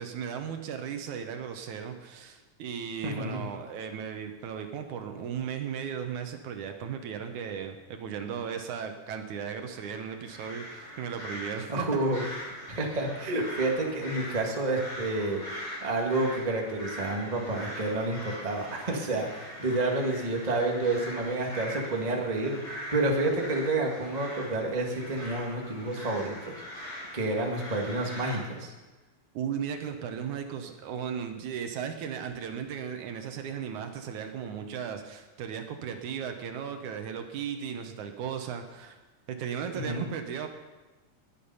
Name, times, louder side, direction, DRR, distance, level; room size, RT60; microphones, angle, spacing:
voice 1, 0.0-11.9 29.3-39.0 39.3-40.5, right 7 dB, 70° right, 6 dB, 2.4 m, -36 dB
voice 2, 3.0-3.4 11.7-12.2 12.7-15.4 15.8-22.6 22.9-26.9 27.1-28.7 39.7-40.1, right 2 dB, 20° right, 0 dB, 1.2 m, -29 dB
sound 1, 9.7-28.4, equal, 40° left, 5.5 m, -42 dB
20.0 x 8.8 x 5.6 m, 1.2 s
omnidirectional pair, 3.7 m